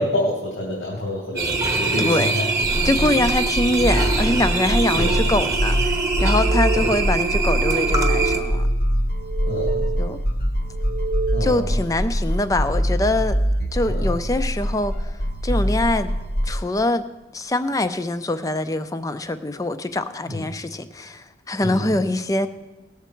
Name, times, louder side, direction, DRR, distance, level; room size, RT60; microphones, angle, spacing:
voice 1, 0.0-2.4 4.8-5.1 6.7-6.8 9.5-9.9 11.3-11.7 13.9-14.1 20.2-20.4 21.6-21.9, left 1 dB, 90° left, -4 dB, 2.4 m, -27 dB
sound 1, 1.4-8.4, right 3 dB, 15° right, 0.9 m, -23 dB
voice 2, 2.0-2.3 2.8-8.7 10.0-10.2 11.4-13.4 13.7-15.1 15.4-16.1 16.4-17.1 17.3-22.5, left 2 dB, 20° left, 10 dB, 0.4 m, -23 dB
sound 2, 2.6-16.5, equal, 50° left, 0.9 m, -24 dB
sound 3, 6.1-7.3 7.6-8.8 9.1-10.3 10.7-11.8, right 5 dB, 55° right, 0.4 m, -30 dB
18.5 x 7.1 x 4.5 m, 1.1 s
head